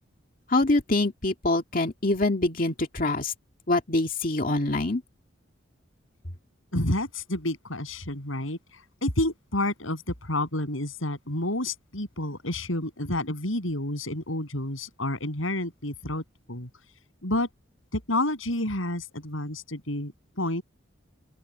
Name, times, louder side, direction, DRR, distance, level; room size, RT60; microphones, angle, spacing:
voice 1, 0.5-3.3 3.7-5.0, left 2 dB, 45° left, 2.3 m, -25 dB
voice 2, 6.7-16.7 17.2-17.5 17.9-20.6, left 1 dB, 85° left, 7.6 m, -30 dB
open air
head